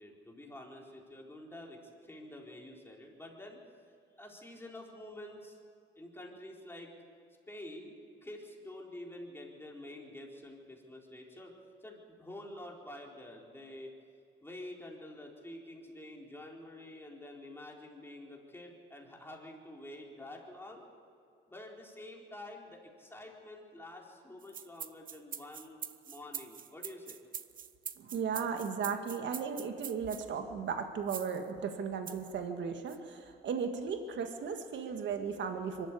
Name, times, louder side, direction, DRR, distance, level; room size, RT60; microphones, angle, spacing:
voice 1, 0.0-3.6 4.2-5.6 6.0-6.9 7.5-7.9 8.2-13.9 14.4-20.9 21.5-25.8 26.1-27.2, left 1 dB, 10° left, -1 dB, 4.2 m, -48 dB
sound 1, 24.4-30.2 31.1-31.4 32.1-32.3 32.9-33.0, right 8 dB, 45° right, 0.8 m, -43 dB
voice 2, 28.0-35.9, right 6 dB, 65° right, 6 dB, 1.8 m, -36 dB
23.5 x 13.0 x 8.5 m, 2.4 s
cardioid pair, 90°, 20 cm